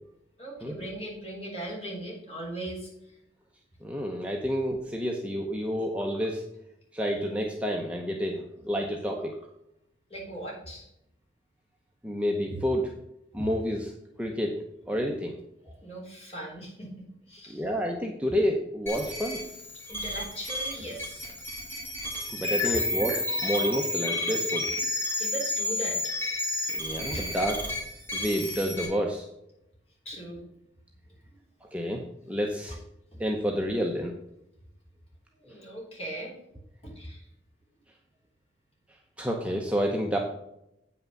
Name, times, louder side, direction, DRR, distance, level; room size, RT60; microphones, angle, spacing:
voice 1, 0.4-3.1 10.1-10.9 15.8-17.7 19.9-21.3 22.7-22.8 25.2-26.1 27.1-27.2 30.1-30.4 31.3-31.4 35.4-36.4 36.8-37.3, right 1 dB, 35° left, -3 dB, 3.7 m, -39 dB
voice 2, 3.8-6.4 6.9-9.4 12.0-12.9 13.3-13.9 14.2-15.4 15.6-15.7 17.5-19.4 22.1-24.6 26.7-27.6 28.1-29.3 31.6-32.8 33.2-34.2 39.2-40.2, equal, 5° right, 0 dB, 0.8 m, -29 dB
sound 1, 18.9-28.8, left 1 dB, 15° left, 2.4 m, -31 dB
8.7 x 5.8 x 5.3 m, 0.81 s
head